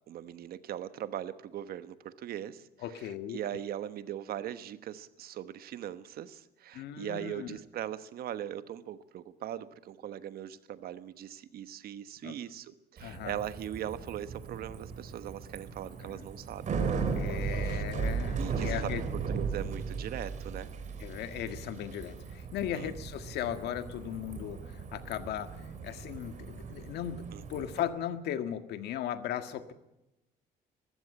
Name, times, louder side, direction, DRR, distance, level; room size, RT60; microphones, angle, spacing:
voice 1, 0.1-2.6 2.9-16.8 17.4-17.8 18.4-19.0 19.3-20.7 22.7-22.9 27.3-27.7, right 11 dB, 65° right, 12 dB, 1.2 m, -40 dB
voice 2, 2.8-3.4 6.7-7.6 12.2-12.4 13.0-13.3 16.0-16.2 17.1-19.0 21.0-24.6 24.9-25.5 25.8-27.2 27.5-29.7, left 10 dB, 75° left, 9 dB, 1.7 m, -37 dB
Bicycle, 13.0-27.8, right 5 dB, 45° right, 3.4 m, -37 dB
21.0 x 15.0 x 8.6 m, 0.90 s
cardioid pair, 110°, 17 cm